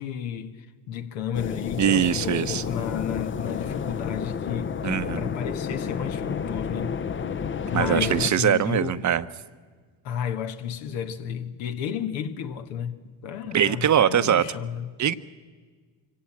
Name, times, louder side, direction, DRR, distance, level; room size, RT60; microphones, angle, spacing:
voice 1, 0.0-4.8 5.1-7.0 7.7-9.0 10.0-14.9, left 8 dB, 75° left, 1.6 m, -32 dB
sound 1, 1.3-8.3, left 6 dB, 25° left, 0.7 m, -31 dB
voice 2, 1.8-2.6 4.8-5.3 7.7-9.2 13.5-14.4 15.0-15.1, right 9 dB, 40° right, 0.9 m, -22 dB
24.5 x 16.5 x 8.8 m
supercardioid pair, 75°, 46 cm